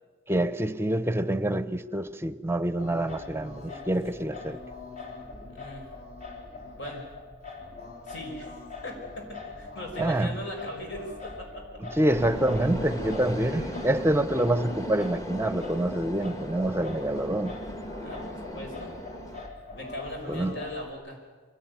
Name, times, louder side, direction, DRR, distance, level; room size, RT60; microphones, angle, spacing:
voice 1, 0.3-4.6 10.0-10.4 11.8-17.5 20.3-20.6, right 1 dB, 15° right, 0.7 m, -26 dB
Singing, 2.8-20.9, left 3 dB, 45° left, 4.1 m, -42 dB
voice 2, 5.5-5.9 6.8-7.1 8.1-8.5 8.8-11.5 18.0-18.9 19.7-21.2, left 1 dB, 70° left, 5.7 m, -39 dB
sound 1, 12.1-19.5, equal, 20° left, 1.4 m, -37 dB
24.0 x 17.5 x 9.5 m
head